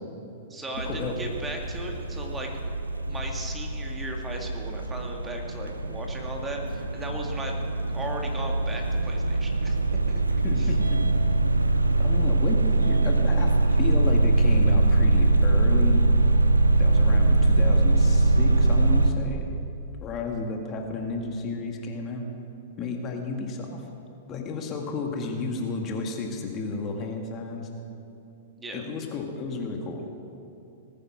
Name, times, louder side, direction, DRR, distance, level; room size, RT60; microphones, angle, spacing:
voice 1, 0.5-2.5 3.0-7.6 7.9-9.8 10.1-10.7 28.6-28.8, right 1 dB, 15° right, 1 dB, 2.0 m, -37 dB
sound 1, 0.7-19.1, right 2 dB, 85° right, 0.7 m, -22 dB
voice 2, 10.4-11.0 12.0-16.1 16.8-19.5 20.0-22.2 22.8-23.8 24.3-27.7 28.7-30.0, left 4 dB, 30° left, 2 dB, 1.8 m, -32 dB
19.0 x 9.7 x 6.1 m, 2.7 s
figure-of-eight pair, 100°, 0 cm